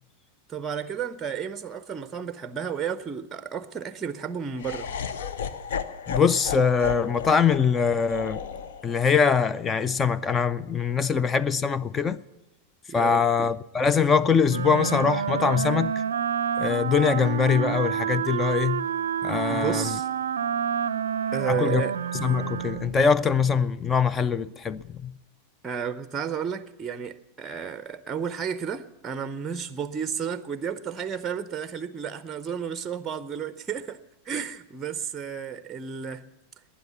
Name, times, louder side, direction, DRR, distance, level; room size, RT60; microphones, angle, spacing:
voice 1, 0.5-4.9 12.9-13.5 19.5-20.1 21.3-22.0 25.6-34.0 34.3-36.2, right 7 dB, 20° right, 0.7 m, -32 dB
Laughter, 4.6-10.7, left 7 dB, 60° left, 0.8 m, -35 dB
voice 2, 6.1-8.4 8.8-12.2 12.9-16.0 16.6-18.9 19.2-20.0 21.5-21.8 22.1-25.1, left 6 dB, 20° left, 0.5 m, -23 dB
Wind instrument woodwind instrument, 14.5-23.0, right 8 dB, 65° right, 0.5 m, -28 dB
20.0 x 10.0 x 7.2 m
figure-of-eight pair, 90°, 0 cm